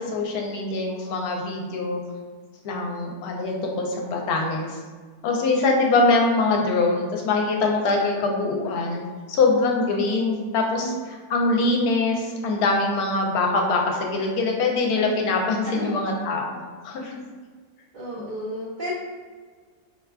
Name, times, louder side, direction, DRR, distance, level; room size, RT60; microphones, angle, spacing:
voice 1, 0.0-2.0 2.6-4.8 5.2-9.0 9.3-10.9 11.3-17.2 18.2-18.3, left 3 dB, 85° left, 1 dB, 1.1 m, -23 dB
voice 2, 15.6-16.0 17.9-18.9, equal, 60° right, -8 dB, 0.5 m, -32 dB
4.5 x 2.3 x 2.3 m, 1.5 s
omnidirectional pair, 1.6 m